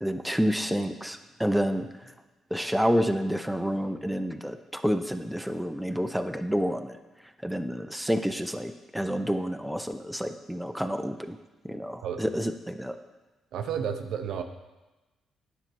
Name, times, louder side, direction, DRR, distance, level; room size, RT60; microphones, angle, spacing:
voice 1, 0.0-1.9 2.5-7.0 7.4-11.4 11.6-13.0, equal, ahead, 7 dB, 0.5 m, -29 dB
voice 2, 13.5-14.4, right 7 dB, 80° right, 6 dB, 0.7 m, -31 dB
9.7 x 5.7 x 4.5 m, 1.1 s
cardioid pair, 90°, 0 cm